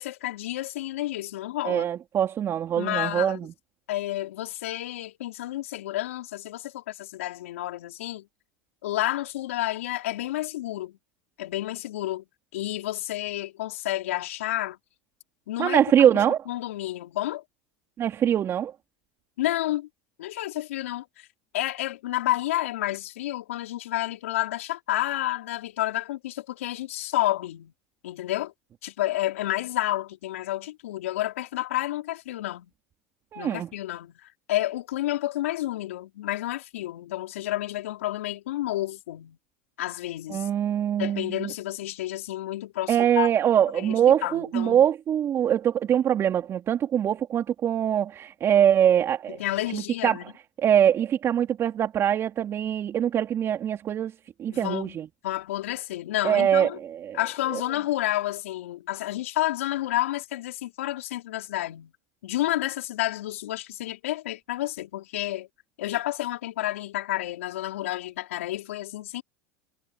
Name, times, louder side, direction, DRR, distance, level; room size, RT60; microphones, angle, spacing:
voice 1, 0.0-1.9 2.7-3.4 3.9-8.3 8.8-11.0 11.4-12.2 12.5-14.8 15.5-16.1 16.5-17.4 19.4-19.9 20.2-21.3 21.5-27.7 28.0-28.5 28.8-32.7 33.4-39.4 39.8-40.5 40.9-43.3 43.7-44.8 49.3-50.3 54.5-55.0 55.2-56.8 57.1-61.9 62.2-65.5 65.8-69.2, left 15 dB, 85° left, 5.0 m, -30 dB
voice 2, 1.6-3.5 15.6-16.4 18.0-18.7 33.3-33.7 40.3-41.5 42.9-49.4 49.7-50.3 50.6-54.1 54.4-55.1 56.2-57.2 57.5-57.6, right 9 dB, 40° right, 4.1 m, -23 dB
hypercardioid pair, 100°, 7 cm